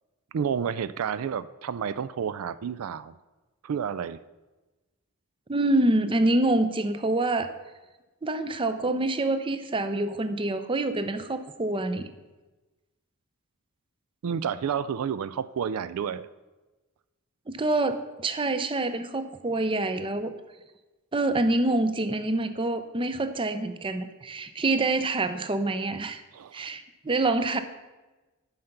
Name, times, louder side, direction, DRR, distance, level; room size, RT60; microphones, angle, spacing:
voice 1, 0.3-3.1 3.6-4.2 14.2-16.3 26.3-26.7, right 7 dB, 75° right, 16 dB, 0.4 m, -30 dB
voice 2, 5.5-7.5 8.2-12.1 17.5-20.3 21.1-26.2 26.5-27.6, right 2 dB, 25° right, 10 dB, 0.5 m, -26 dB
9.4 x 5.8 x 6.6 m, 1.2 s
head